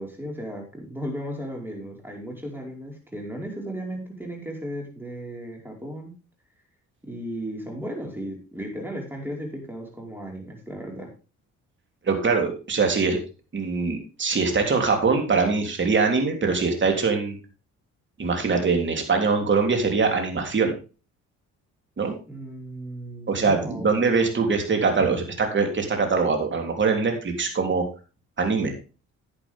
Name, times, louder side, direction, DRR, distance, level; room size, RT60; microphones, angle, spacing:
voice 1, 0.0-6.1 7.0-11.1 22.3-23.9, equal, 5° right, 1 dB, 5.0 m, -35 dB
voice 2, 12.0-13.2 13.5-17.4 18.2-20.8 22.0-22.2 23.3-27.8 28.4-28.7, right 4 dB, 40° right, 4 dB, 3.4 m, -23 dB
10.0 x 10.0 x 3.7 m, 0.33 s
cardioid pair, 90°, 30 cm